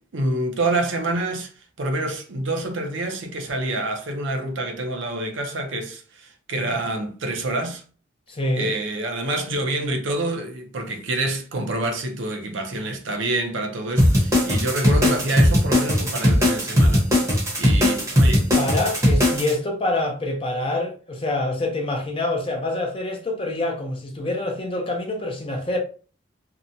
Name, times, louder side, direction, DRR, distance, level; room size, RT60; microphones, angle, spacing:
voice 1, 0.1-1.5 1.8-7.8 8.6-17.0 17.6-18.5, right 2 dB, 75° right, 0.6 m, -27 dB
voice 2, 8.3-8.7 18.6-25.8, left 2 dB, 25° left, 0.5 m, -26 dB
sound 1, 14.0-19.5, left 1 dB, 15° right, 0.7 m, -18 dB
2.7 x 2.1 x 2.6 m
head